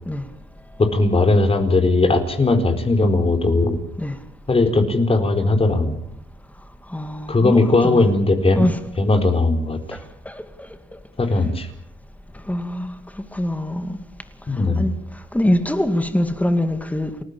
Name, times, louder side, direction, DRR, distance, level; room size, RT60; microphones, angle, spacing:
voice 1, 0.8-3.8 4.5-6.0 7.3-8.7 9.0-10.0 11.2-11.7 14.5-14.9, left 2 dB, 30° left, 4.4 m, -18 dB
voice 2, 6.9-8.1 8.5-8.8 10.3-10.4 11.4-11.5 12.5-14.0 14.8-14.9 15.3-17.2, left 1 dB, 5° left, 2.4 m, -23 dB
29.5 x 13.5 x 8.8 m
cardioid pair, 90°, 20 cm